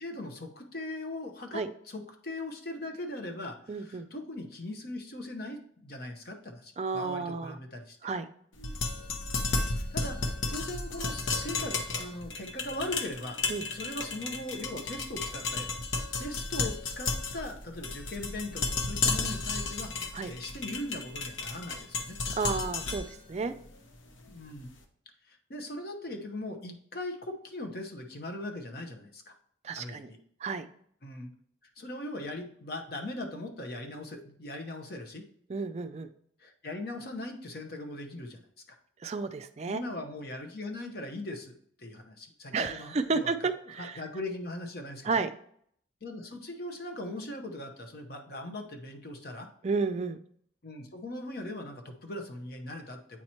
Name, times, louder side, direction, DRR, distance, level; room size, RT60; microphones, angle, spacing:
voice 1, 0.0-8.0 9.9-13.4 13.7-15.7 16.2-22.6 24.3-24.7 25.3-29.3 29.8-30.2 31.0-31.3 31.8-35.2 36.4-38.8 39.7-41.5 41.8-43.5 43.8-45.2 46.0-49.5 50.6-53.2, left 1 dB, 50° left, 5 dB, 0.9 m, -40 dB
voice 2, 3.7-4.1 6.8-7.6 8.0-8.3 13.5-13.6 20.1-20.3 22.4-23.5 29.6-30.1 30.4-30.7 35.5-36.1 39.0-39.8 42.5-44.0 45.0-45.3 49.6-50.2, right 4 dB, 35° right, 9 dB, 0.3 m, -32 dB
sound 1, 8.6-24.6, left 3 dB, 85° left, 0.8 m, -33 dB
8.6 x 2.9 x 4.3 m, 0.64 s
head